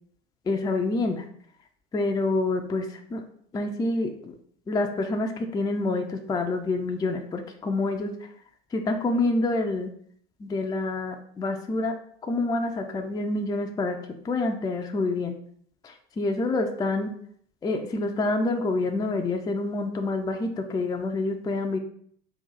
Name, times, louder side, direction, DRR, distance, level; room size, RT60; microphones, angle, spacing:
voice 1, 0.5-1.2 1.9-3.2 3.5-4.3 4.7-8.1 8.7-9.9 10.4-11.9 12.2-14.0 14.2-15.4 15.8-17.1 17.6-21.8, left 2 dB, 15° left, 4 dB, 0.4 m, -27 dB
3.8 x 2.6 x 3.9 m, 0.63 s
figure-of-eight pair, 70°, 30 cm